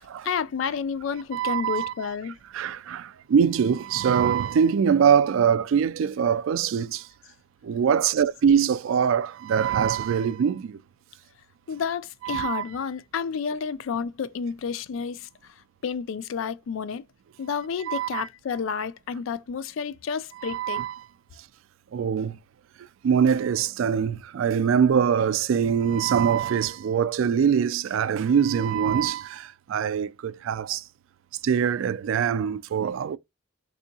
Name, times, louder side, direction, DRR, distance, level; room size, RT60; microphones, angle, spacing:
voice 1, 0.2-2.4 11.7-15.5 15.8-17.0 17.4-20.8, left 6 dB, 70° left, 0.3 m, -30 dB
voice 2, 1.3-2.1 2.5-7.1 7.6-10.8 12.2-12.6 17.8-18.2 20.4-21.1 21.9-22.4 23.0-30.8 31.4-33.2, right 7 dB, 75° right, 0.3 m, -23 dB
3.5 x 2.7 x 2.7 m
head